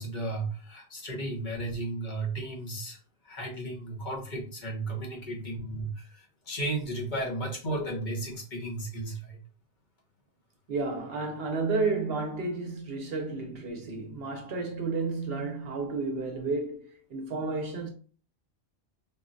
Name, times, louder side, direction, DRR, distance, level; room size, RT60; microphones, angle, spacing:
voice 1, 0.0-9.4, right 2 dB, 45° left, 0.9 m, -34 dB
voice 2, 10.7-17.9, right 3 dB, 65° right, 0.8 m, -31 dB
3.8 x 2.1 x 2.5 m
omnidirectional pair, 1.2 m